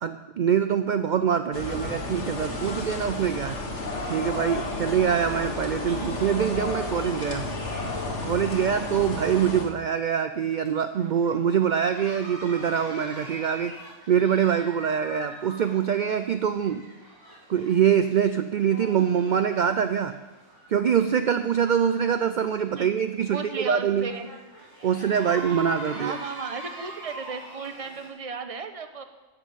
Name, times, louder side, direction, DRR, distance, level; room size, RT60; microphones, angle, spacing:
voice 1, 0.0-3.6 4.1-7.5 8.2-13.8 14.1-16.8 17.5-20.2 20.7-24.1 24.8-26.2, right 8 dB, 60° right, 9 dB, 0.5 m, -24 dB
sound 1, 1.5-9.7, left 2 dB, 65° left, 1.9 m, -32 dB
voice 2, 5.8-6.2 22.7-22.9 23.3-24.3 26.0-29.0, right 5 dB, 30° right, 7 dB, 0.9 m, -35 dB
sound 2, 10.3-28.1, right 2 dB, 15° left, 3.8 m, -44 dB
13.5 x 6.1 x 8.6 m, 1.2 s
omnidirectional pair, 1.4 m